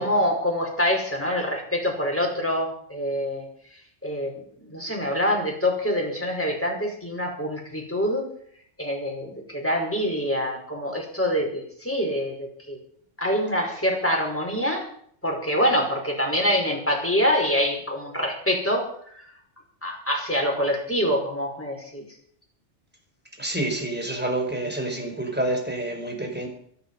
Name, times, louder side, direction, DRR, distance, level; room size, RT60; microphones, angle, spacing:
voice 1, 0.0-3.5 4.0-4.4 4.7-8.3 8.8-12.8 13.2-14.9 15.2-19.3 19.8-22.1, equal, 10° left, 0 dB, 5.5 m, -25 dB
voice 2, 23.4-26.5, right 1 dB, 10° right, 2 dB, 4.7 m, -28 dB
23.0 x 11.0 x 5.7 m, 0.63 s
omnidirectional pair, 1.2 m